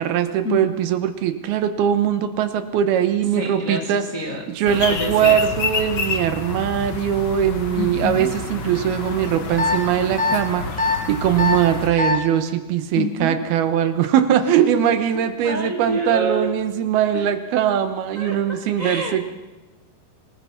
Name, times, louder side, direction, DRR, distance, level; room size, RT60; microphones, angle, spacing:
voice 1, 0.0-4.0 4.5-10.7 11.1-19.3, right 9 dB, 70° right, 10 dB, 2.9 m, -21 dB
voice 2, 3.3-5.4 7.8-8.3 12.9-13.5 14.6-14.7 15.4-16.5 17.1-17.3 18.2-19.2, equal, 45° left, 1 dB, 1.0 m, -28 dB
sound 1, 4.7-11.9, left 4 dB, 70° left, 1.2 m, -29 dB
sound 2, 9.6-9.8 10.2-10.4 10.8-11.0 11.4-11.6 12.0-12.2, left 3 dB, 5° left, 2.0 m, -20 dB
25.5 x 19.5 x 5.8 m, 1.1 s
omnidirectional pair, 4.8 m